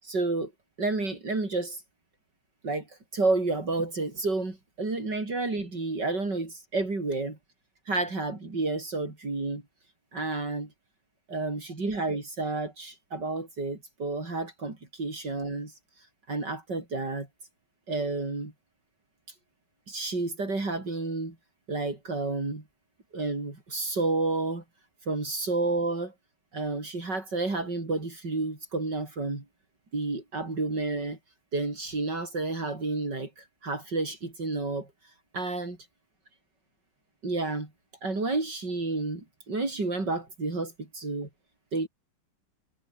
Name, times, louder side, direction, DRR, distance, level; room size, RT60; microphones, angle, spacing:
voice 1, 0.0-0.5 0.8-1.8 2.6-7.4 7.9-9.6 10.1-10.7 11.3-17.3 17.9-18.5 19.3-19.4 19.9-21.4 21.7-22.6 23.1-24.6 25.0-26.1 26.5-29.4 29.9-31.2 31.5-35.8 37.2-37.7 38.0-41.3 41.7-41.9, right 3 dB, 75° right, 6.1 m, -30 dB
omnidirectional pair, 1.9 m